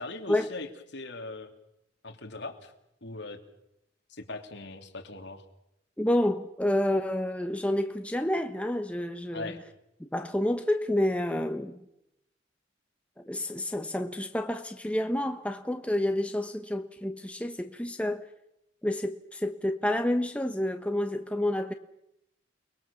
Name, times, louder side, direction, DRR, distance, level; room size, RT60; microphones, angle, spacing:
voice 1, 0.0-1.5 2.0-2.7 3.0-3.4 4.1-5.5 9.3-9.6, left 2 dB, 65° left, 2.9 m, -40 dB
voice 2, 6.0-9.6 10.1-11.8 13.3-18.2 18.8-21.7, left 1 dB, 5° left, 1.0 m, -29 dB
29.5 x 21.0 x 7.0 m
head